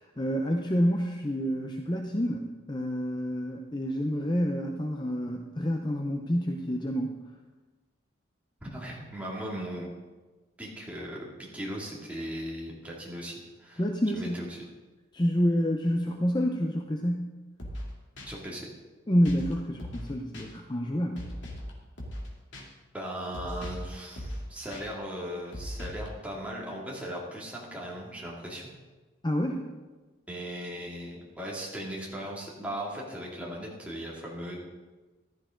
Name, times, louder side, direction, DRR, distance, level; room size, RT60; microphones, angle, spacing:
voice 1, 0.2-7.2 13.8-14.5 15.1-17.3 19.1-21.3 29.2-29.6, equal, 20° left, 3 dB, 0.7 m, -28 dB
voice 2, 8.6-9.9 10.6-11.3 11.5-13.8 14.1-14.6 18.3-18.7 22.9-28.6 30.3-34.6, equal, 5° right, -4 dB, 2.6 m, -38 dB
sound 1, 17.6-17.9 18.2-18.3 19.3-19.5 19.8-20.1 20.3-20.5 21.2-21.7 22.0-22.3 22.5-22.6 23.3-23.9 24.2-24.4 24.7-24.8 25.5-26.1, equal, 65° left, 2.5 m, -38 dB
14.5 x 12.0 x 3.8 m, 1.3 s
head